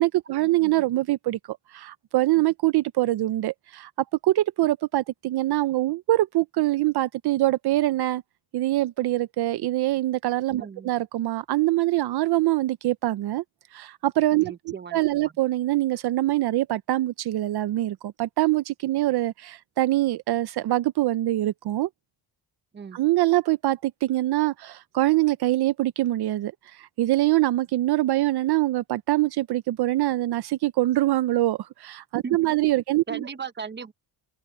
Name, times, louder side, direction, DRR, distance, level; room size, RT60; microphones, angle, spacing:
voice 1, 0.0-3.9 4.2-8.2 8.5-13.4 13.7-14.5 14.9-21.9 22.9-33.2, right 16 dB, 65° right, 0.6 m, -24 dB
voice 2, 10.6-10.9 14.4-15.3 22.7-23.0 32.2-32.5 33.1-33.9, right 6 dB, 25° right, 1.0 m, -37 dB
cardioid pair, 140°, 43 cm